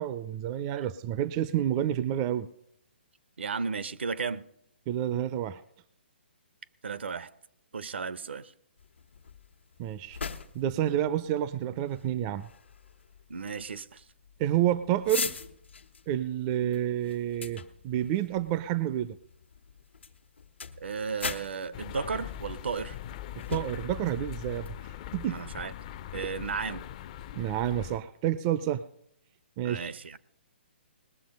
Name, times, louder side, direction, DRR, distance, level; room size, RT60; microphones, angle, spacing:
voice 1, 0.0-2.5 4.9-5.6 9.8-10.2 10.5-12.5 14.4-15.4 16.1-19.2 23.5-24.8 25.1-25.4 27.4-28.8 29.6-29.9, right 11 dB, 30° right, 0.5 m, -29 dB
voice 2, 3.4-4.4 6.8-7.3 7.7-8.5 13.3-14.0 20.8-23.0 25.2-25.7 26.1-26.9 29.6-30.2, right 5 dB, 70° right, 0.8 m, -34 dB
sound 1, 8.8-24.7, left 5 dB, 80° left, 1.3 m, -42 dB
sound 2, 21.7-28.0, left 12 dB, 40° left, 0.6 m, -41 dB
20.0 x 7.3 x 5.3 m
figure-of-eight pair, 135°, 6 cm